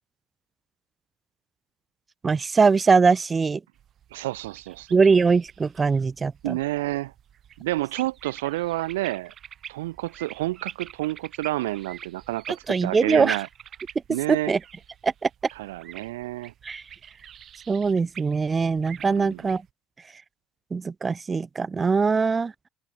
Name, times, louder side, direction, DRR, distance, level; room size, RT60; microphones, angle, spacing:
voice 1, 2.2-3.6 4.9-6.6 12.7-13.4 14.3-14.6 15.0-15.3 16.6-16.8 17.7-19.6 20.7-22.5, right 4 dB, 30° right, 0.5 m, -22 dB
sound 1, 3.8-19.7, right 10 dB, 50° right, 1.4 m, -46 dB
voice 2, 4.1-4.9 6.4-7.1 7.6-9.3 9.7-13.5 14.1-14.5 15.6-16.5 19.1-19.4, right 17 dB, 90° right, 0.6 m, -29 dB
open air
supercardioid pair, 75°, 0 cm